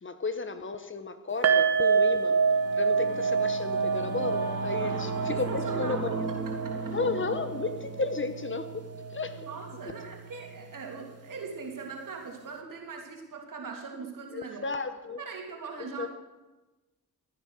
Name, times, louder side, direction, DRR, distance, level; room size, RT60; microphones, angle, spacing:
voice 1, 0.0-2.4 2.7-6.0 6.9-8.8 9.1-9.5 14.3-15.2 16.0-16.1, left 4 dB, 35° left, 10 dB, 1.1 m, -33 dB
sound 1, 1.4-8.6 8.9-9.1 9.5-9.6, right 5 dB, 40° right, 1.4 m, -27 dB
Singing / Musical instrument, 1.9-11.6, right 3 dB, 85° right, 4.6 m, -38 dB
voice 2, 4.8-6.0 6.6-6.9 9.3-14.7 15.2-16.1, right 5 dB, 60° right, 1 dB, 3.1 m, -40 dB
15.5 x 9.4 x 6.5 m, 1.1 s
cardioid pair, 70°, 36 cm